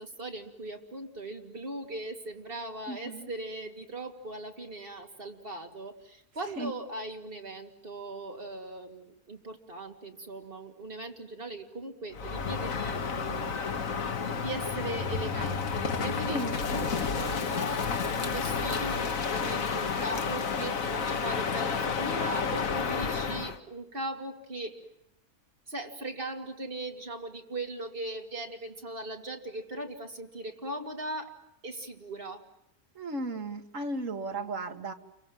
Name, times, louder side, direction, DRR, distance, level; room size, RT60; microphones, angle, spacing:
voice 1, 0.0-13.6 14.2-24.8 25.7-31.3 31.6-32.4, right 1 dB, 40° right, 2 dB, 2.8 m, -39 dB
voice 2, 2.9-3.3 6.6-6.7 16.3-16.6 33.0-34.9, right 2 dB, 60° right, 5 dB, 2.1 m, -35 dB
Crow, 12.1-23.6, left 5 dB, 65° left, 1.7 m, -31 dB
29.0 x 24.0 x 7.4 m, 0.80 s
omnidirectional pair, 1.5 m